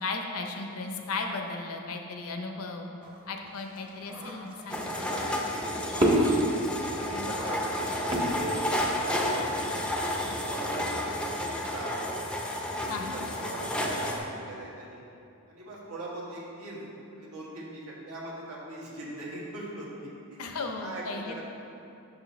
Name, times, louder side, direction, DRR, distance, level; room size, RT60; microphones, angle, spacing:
voice 1, 0.0-2.9 3.3-4.9 7.1-7.4 12.9-13.2 20.4-21.4, left 3 dB, 70° left, 3 dB, 0.6 m, -35 dB
sound 1, 3.0-9.2, right 1 dB, 25° right, 0.8 m, -30 dB
sound 2, 4.7-14.2, left 1 dB, 5° left, 0.4 m, -31 dB
voice 2, 4.8-6.7 7.0-7.8 8.1-10.0 10.2-11.9 12.7-15.0 15.5-16.8 17.2-21.4, right 1 dB, 80° right, -5 dB, 1.4 m, -41 dB
6.6 x 6.3 x 3.1 m, 2.7 s
head